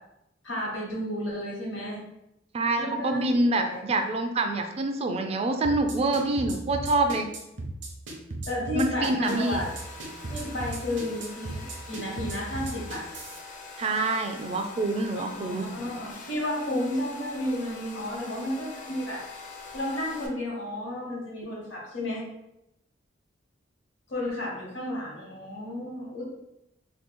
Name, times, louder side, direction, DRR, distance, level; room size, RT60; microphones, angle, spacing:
voice 1, 0.4-2.0 2.8-4.0 8.5-9.7 10.3-13.0 15.3-19.2 19.7-22.2 24.1-26.2, left 1 dB, 70° left, -3 dB, 1.2 m, -32 dB
voice 2, 2.5-7.3 8.8-9.6 13.8-15.7, right 2 dB, 30° right, 5 dB, 0.3 m, -26 dB
sound 1, 5.6-13.4, right 2 dB, 70° right, 0.7 m, -36 dB
Domestic sounds home sounds, 9.2-20.3, left 3 dB, 45° left, 0.5 m, -44 dB
2.9 x 2.3 x 3.4 m, 0.87 s
head